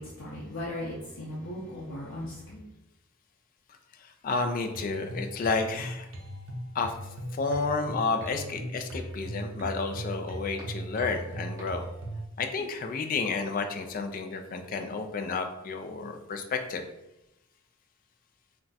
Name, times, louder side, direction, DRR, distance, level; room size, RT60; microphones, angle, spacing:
voice 1, 0.0-2.6, left 1 dB, 85° left, -6 dB, 0.6 m, -37 dB
voice 2, 4.0-6.1 6.7-7.0 7.3-11.9 12.4-16.8, left 4 dB, 45° left, 6 dB, 0.3 m, -31 dB
sound 1, 4.7-12.3, right 1 dB, 70° right, 0.5 m, -39 dB
sound 2, 8.6-8.7 9.6-9.7 10.6-10.7 11.6-11.7 12.6-12.7, right 2 dB, 15° right, 0.8 m, -45 dB
2.3 x 2.2 x 3.9 m, 0.94 s
head